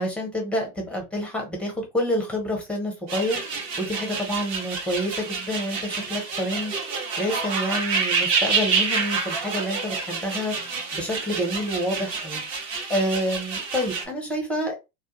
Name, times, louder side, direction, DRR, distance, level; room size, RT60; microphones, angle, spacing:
voice 1, 0.0-3.4 3.8-6.7 7.2-10.5 10.9-12.4 12.9-14.7, equal, 5° left, 0.5 m, -28 dB
sound 1, 3.1-14.0, right 5 dB, 35° right, 0.8 m, -28 dB
2.2 x 2.1 x 2.8 m
hypercardioid pair, 100°, 48 cm